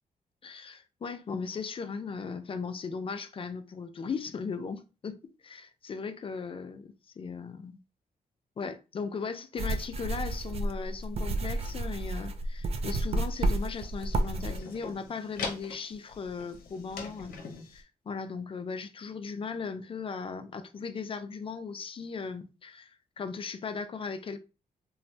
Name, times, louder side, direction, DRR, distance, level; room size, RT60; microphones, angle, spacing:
voice 1, 0.4-7.8 8.6-17.3 17.7-22.9 23.2-24.4, left 5 dB, 35° left, 0.4 m, -37 dB
sound 1, 9.6-14.6, right 2 dB, 40° right, 0.4 m, -31 dB
sound 2, 12.8-17.8, left 4 dB, 85° left, 0.7 m, -43 dB
3.1 x 2.2 x 2.6 m
cardioid pair, 95°, 15 cm